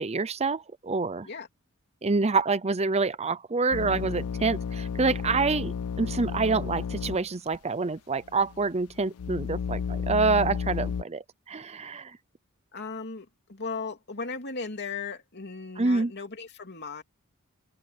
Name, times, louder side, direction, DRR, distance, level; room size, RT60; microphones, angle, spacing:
voice 1, 0.0-1.3 2.0-12.2 15.8-16.1, right 4 dB, 30° right, 0.7 m, -27 dB
sound 1, 3.7-7.2 7.5-7.6 8.3-11.0, left 6 dB, 90° left, 0.5 m, -32 dB
voice 2, 12.7-17.0, left 4 dB, 50° left, 3.2 m, -37 dB
open air
head